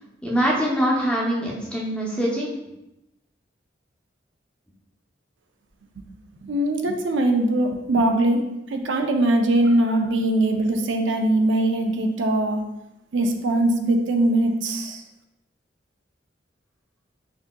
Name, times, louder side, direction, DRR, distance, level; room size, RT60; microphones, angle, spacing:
voice 1, 0.2-2.5, equal, 5° left, -4 dB, 0.6 m, -23 dB
voice 2, 6.4-12.6 13.1-15.0, right 1 dB, 85° right, 4 dB, 0.5 m, -21 dB
5.9 x 2.7 x 2.2 m, 0.90 s
head